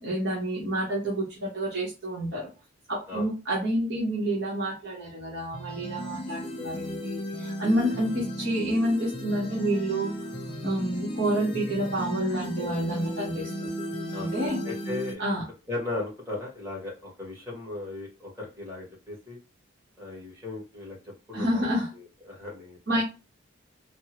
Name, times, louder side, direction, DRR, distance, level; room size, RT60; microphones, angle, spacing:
voice 1, 0.0-2.5 2.9-10.1 10.6-13.7 14.2-14.6 15.2-15.5 21.3-21.9 22.9-23.0, right 1 dB, 55° right, -5 dB, 1.0 m, -28 dB
sound 1, 5.5-15.1, equal, 25° left, 0.4 m, -35 dB
voice 2, 6.6-7.2 14.1-14.3 14.6-15.2 15.7-19.4 20.0-21.0 21.3-21.6 22.3-23.0, left 2 dB, 15° right, -4 dB, 1.3 m, -37 dB
3.5 x 2.0 x 2.9 m, 0.30 s
head